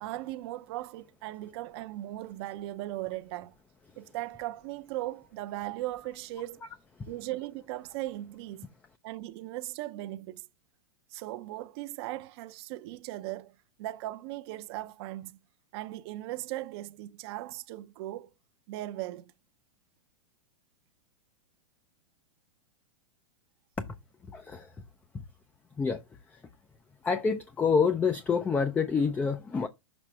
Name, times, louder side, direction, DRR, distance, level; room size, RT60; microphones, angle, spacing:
voice 1, 0.0-3.5 4.0-6.6 7.1-8.7 9.0-10.4 11.1-13.5 13.8-15.4 15.7-18.3 18.7-19.3, right 16 dB, 50° right, 0.6 m, -38 dB
voice 2, 24.3-24.7 25.8-26.0 26.3-26.4 27.0-29.7, left 5 dB, 10° left, 0.3 m, -27 dB
6.2 x 3.2 x 5.9 m
hypercardioid pair, 140°, 17 cm